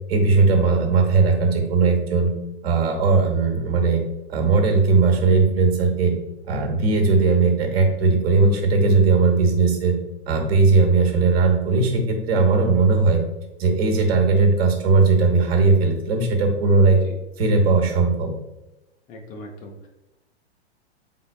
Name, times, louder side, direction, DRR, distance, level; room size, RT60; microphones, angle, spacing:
voice 1, 0.1-2.3 2.6-4.0 4.3-6.1 6.5-10.0 10.3-13.2 13.6-17.0 17.4-18.3, right 4 dB, 65° right, 2 dB, 1.1 m, -18 dB
voice 2, 19.1-19.9, left 1 dB, 25° left, 2 dB, 0.4 m, -40 dB
4.1 x 3.6 x 2.2 m, 0.97 s
hypercardioid pair, 110°, 33 cm